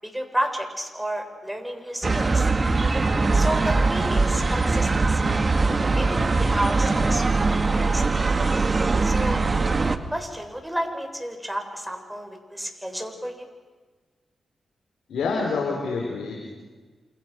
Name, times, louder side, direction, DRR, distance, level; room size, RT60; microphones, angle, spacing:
voice 1, 0.0-2.5 3.3-5.2 6.0-8.0 9.0-9.4 10.1-13.5, right 1 dB, 5° right, 4 dB, 7.1 m, -31 dB
sound 1, 2.0-10.0, right 3 dB, 40° right, 2.2 m, -21 dB
voice 2, 15.1-16.6, left 4 dB, 85° left, -1 dB, 5.1 m, -27 dB
29.0 x 28.5 x 6.5 m, 1.3 s
cardioid pair, 55°, 0 cm